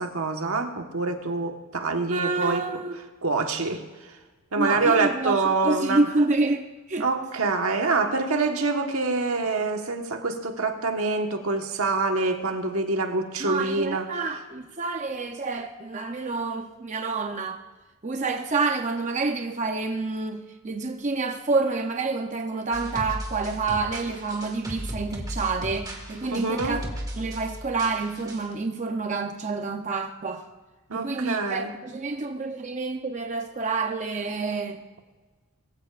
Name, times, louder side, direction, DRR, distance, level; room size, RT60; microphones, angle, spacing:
voice 1, 0.0-2.6 3.2-4.2 4.5-6.1 7.0-14.1 26.3-26.8 30.9-31.7, right 3 dB, 75° right, 1.4 m, -26 dB
voice 2, 2.1-2.9 4.6-7.1 13.4-17.6 18.0-26.8 27.2-30.5 30.9-34.8, right 3 dB, 35° right, 0.7 m, -28 dB
sound 1, 22.7-28.5, equal, 15° right, 1.7 m, -36 dB
22.0 x 15.0 x 2.5 m
head